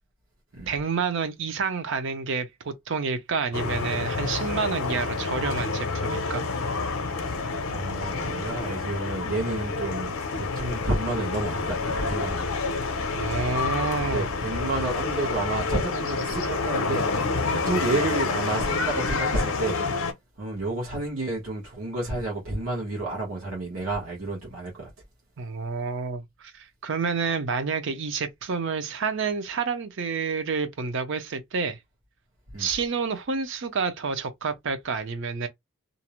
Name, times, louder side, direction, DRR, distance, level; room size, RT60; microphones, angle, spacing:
voice 1, 0.7-6.4 13.1-14.3 25.4-31.8 32.6-35.5, right 5 dB, 60° right, 0.5 m, -29 dB
sound 1, 3.5-20.1, left 4 dB, 70° left, 0.6 m, -28 dB
voice 2, 7.1-12.5 14.1-17.1 17.5-19.8 20.4-24.9 32.5-32.7, right 2 dB, 75° right, 1.0 m, -30 dB
2.5 x 2.0 x 2.9 m
head